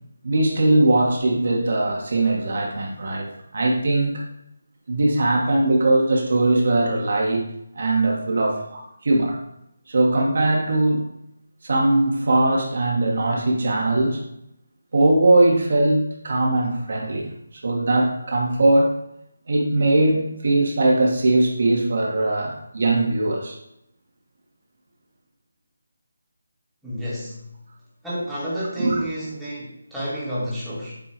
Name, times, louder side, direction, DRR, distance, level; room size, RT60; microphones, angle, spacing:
voice 1, 0.2-4.3 4.9-7.4 7.7-9.4 9.9-11.0 11.6-14.2 14.9-18.9 19.5-23.6 28.8-29.0, right 2 dB, 55° right, 0 dB, 1.4 m, -20 dB
voice 2, 26.8-27.5 28.0-31.0, equal, ahead, -11 dB, 1.4 m, -30 dB
7.6 x 2.8 x 4.5 m, 0.78 s
figure-of-eight pair, 165°, 0 cm